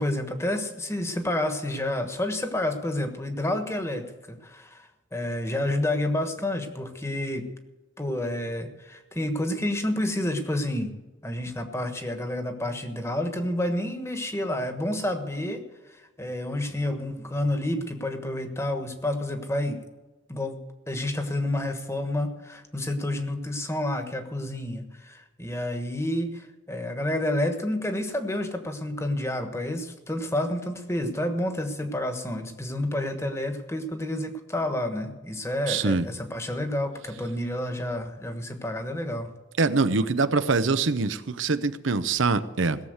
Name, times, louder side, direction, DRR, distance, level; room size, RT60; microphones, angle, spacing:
voice 1, 0.0-7.4 8.0-10.9 11.2-15.6 15.9-19.8 20.3-20.6 20.9-39.3, left 1 dB, 15° left, 7 dB, 1.3 m, -29 dB
voice 2, 35.7-36.0 39.6-42.8, right 4 dB, 90° right, 12 dB, 0.8 m, -24 dB
17.5 x 7.3 x 8.0 m, 1.1 s
head